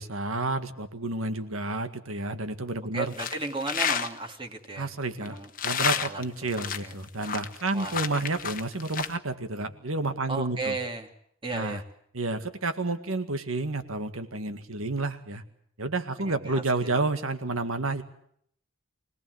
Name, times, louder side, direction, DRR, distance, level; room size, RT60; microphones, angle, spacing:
voice 1, 0.0-3.1 4.8-10.8 11.5-11.8 12.1-15.4 15.8-18.0, right 2 dB, 80° right, 9 dB, 1.9 m, -30 dB
voice 2, 2.9-4.9 5.2-5.5 5.9-6.5 6.8-7.0 7.7-8.0 10.3-11.1 11.4-11.8 16.2-16.6 16.9-17.0, right 3 dB, 25° right, 3 dB, 2.4 m, -35 dB
sound 1, 3.1-4.1 5.3-9.2, left 7 dB, 40° left, 1.1 m, -30 dB
25.5 x 19.0 x 7.9 m, 0.68 s
head